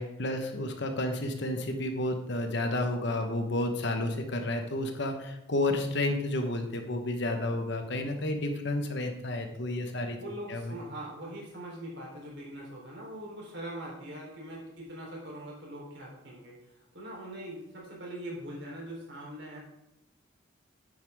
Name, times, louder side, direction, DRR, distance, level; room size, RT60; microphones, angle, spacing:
voice 1, 0.0-10.2 10.5-10.8, left 1 dB, 55° left, 5 dB, 1.2 m, -31 dB
voice 2, 10.2-19.6, right 1 dB, 55° right, -2 dB, 3.7 m, -42 dB
9.3 x 9.1 x 3.6 m, 0.89 s
head